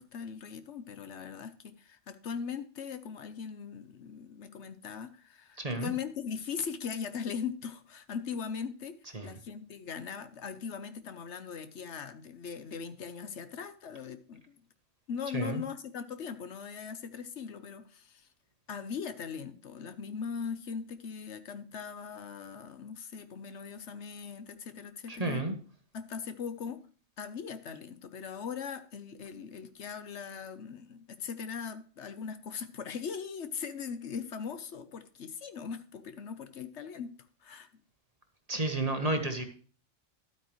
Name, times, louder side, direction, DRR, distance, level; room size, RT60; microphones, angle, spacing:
voice 1, 0.0-9.0 9.2-14.6 15.1-18.3 18.7-25.4 25.9-26.8 27.2-37.1 37.4-37.7, left 6 dB, 70° left, 11 dB, 1.1 m, -40 dB
voice 2, 5.6-5.9 9.1-9.4 15.3-15.6 25.1-25.5 38.5-39.4, right 2 dB, 30° right, 6 dB, 1.3 m, -31 dB
12.0 x 8.7 x 3.1 m, 0.41 s
omnidirectional pair, 1.3 m